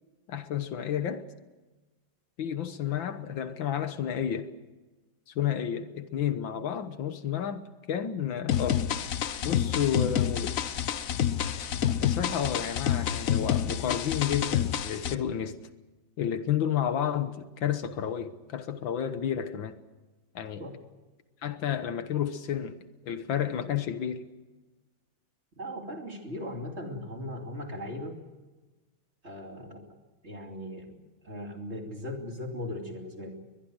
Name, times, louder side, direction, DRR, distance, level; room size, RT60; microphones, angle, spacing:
voice 1, 0.3-1.3 2.4-4.5 5.3-8.9 9.4-10.7 12.0-15.6 16.2-19.8 20.4-20.7 21.4-22.8 23.0-24.2, left 9 dB, 75° left, 1.9 m, -31 dB
sound 1, 8.5-15.1, left 9 dB, 55° left, 1.0 m, -28 dB
voice 2, 25.6-28.2 29.2-30.0 30.2-31.0 31.2-33.4, left 1 dB, 30° right, 3.2 m, -38 dB
22.5 x 21.0 x 6.4 m
omnidirectional pair, 2.2 m